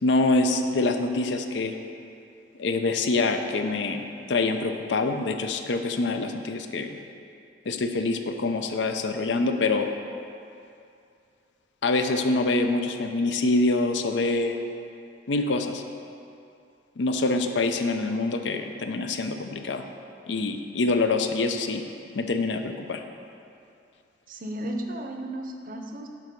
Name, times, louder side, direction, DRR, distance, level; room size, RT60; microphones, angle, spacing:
voice 1, 0.0-1.7 2.6-6.9 7.7-9.9 11.8-14.6 15.3-15.8 17.0-19.9 20.3-21.8 22.1-23.0, left 3 dB, 80° left, 6 dB, 0.5 m, -25 dB
voice 2, 24.3-26.1, right 1 dB, 50° right, 4 dB, 0.6 m, -34 dB
7.5 x 4.7 x 5.3 m, 2.5 s
head